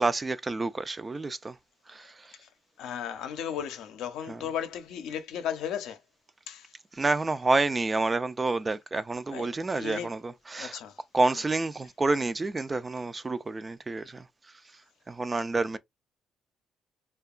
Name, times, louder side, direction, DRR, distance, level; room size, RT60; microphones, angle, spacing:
voice 1, 0.0-1.6 1.9-2.3 4.3-4.4 6.9-10.8 11.1-14.3 15.1-15.8, right 3 dB, 25° right, 0.3 m, -29 dB
voice 2, 2.8-6.0 6.5-6.7 9.3-9.5 9.8-10.1 10.6-11.0, left 9 dB, 90° left, 0.5 m, -35 dB
2.8 x 2.2 x 2.4 m
cardioid pair, 90°, 0 cm